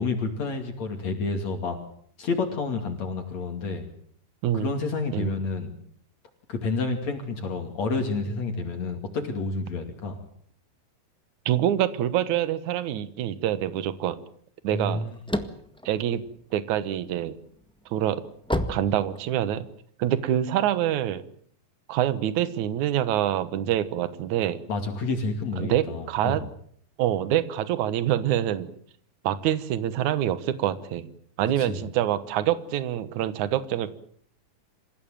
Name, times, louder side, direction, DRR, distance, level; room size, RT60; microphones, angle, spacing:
voice 1, 0.0-1.8 2.2-3.9 4.5-5.7 6.5-10.2 14.7-15.1 24.7-26.4 31.6-31.8, left 3 dB, 55° left, 6 dB, 3.7 m, -29 dB
voice 2, 11.5-14.2 14.6-15.0 15.9-16.2 16.5-17.4 17.9-18.2 18.7-19.6 20.0-21.2 21.9-24.6 25.6-26.4 27.0-28.7 29.2-31.1 31.4-33.9, right 11 dB, 70° right, 14 dB, 2.6 m, -25 dB
sound 1, 15.1-17.0 17.5-19.7, equal, 5° left, 0.3 m, -30 dB
27.0 x 16.0 x 9.1 m, 0.63 s
omnidirectional pair, 3.8 m